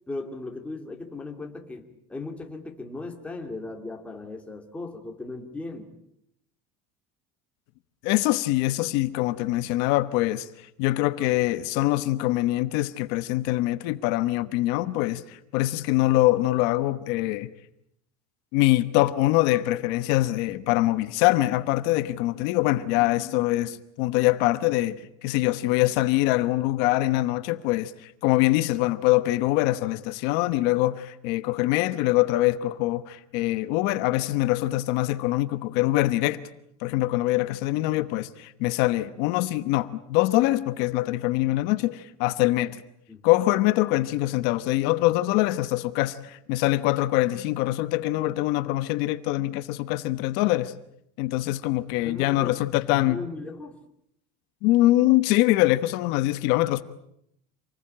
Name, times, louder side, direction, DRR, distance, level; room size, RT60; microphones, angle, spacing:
voice 1, 0.1-5.9 43.1-43.3 52.0-52.6 52.9-53.8, left 2 dB, 5° left, 2.5 m, -37 dB
voice 2, 8.0-17.5 18.5-36.4 36.8-42.8 43.2-50.7 51.2-53.2 54.6-56.8, left 17 dB, 55° left, 1.1 m, -24 dB
27.5 x 20.5 x 8.7 m
cardioid pair, 180°, 20 cm